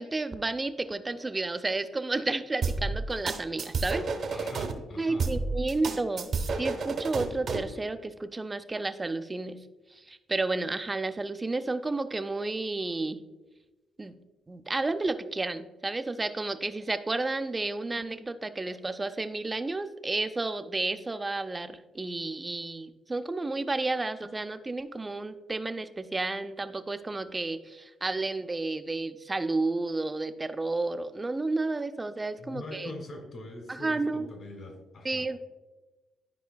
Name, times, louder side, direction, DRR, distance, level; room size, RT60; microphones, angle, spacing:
voice 1, 0.0-4.3 5.0-6.3 6.6-9.6 9.9-13.2 14.0-14.1 14.5-32.9 33.7-34.3 35.0-35.4, right 2 dB, 20° right, 10 dB, 0.4 m, -31 dB
sound 1, 2.6-4.7 5.2-7.7, right 4 dB, 60° right, 0.9 m, -30 dB
voice 2, 4.3-5.3 32.4-35.3, left 2 dB, 55° left, 4 dB, 1.7 m, -43 dB
11.5 x 4.9 x 2.2 m, 1.1 s
cardioid pair, 90°, 0 cm